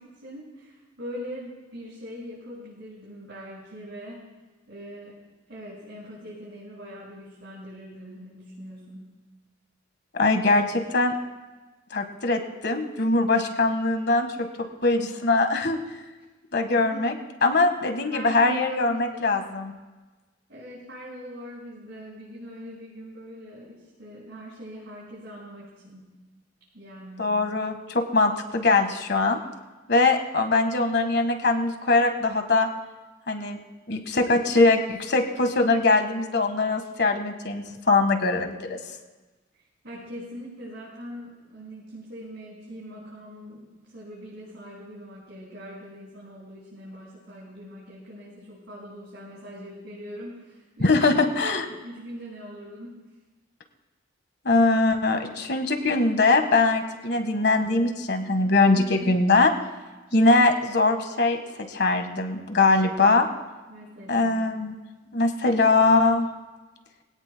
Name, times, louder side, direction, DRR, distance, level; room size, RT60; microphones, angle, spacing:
voice 1, 0.0-4.2 4.7-5.2 5.5-9.1 16.9-17.1 18.1-19.3 20.5-26.2 26.7-27.4 39.5-51.0 51.7-53.0 58.7-59.1 63.7-64.3, equal, 65° right, -8 dB, 5.9 m, -42 dB
voice 2, 10.1-11.1 11.9-14.5 14.8-15.8 16.5-17.1 17.4-19.7 27.2-29.4 29.9-32.7 33.3-33.6 33.9-38.8 50.8-51.7 54.4-59.5 60.1-61.4 61.7-63.3 64.1-64.7 65.1-66.3, left 3 dB, 60° left, 5 dB, 1.6 m, -22 dB
23.5 x 17.5 x 2.3 m, 1.2 s
head